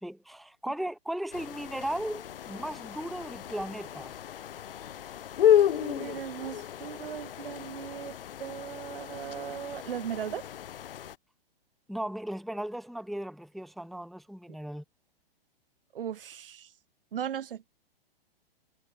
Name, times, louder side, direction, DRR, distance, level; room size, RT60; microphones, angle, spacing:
voice 1, 0.0-4.2 11.9-14.8, right 1 dB, ahead, 0.7 m, -36 dB
Hibou Grand Duc, 1.3-11.2, left 10 dB, 65° left, 0.6 m, -31 dB
voice 2, 5.7-10.5 15.9-16.7 17.1-17.6, right 9 dB, 65° right, 0.9 m, -38 dB
figure-of-eight pair, 115°, 30 cm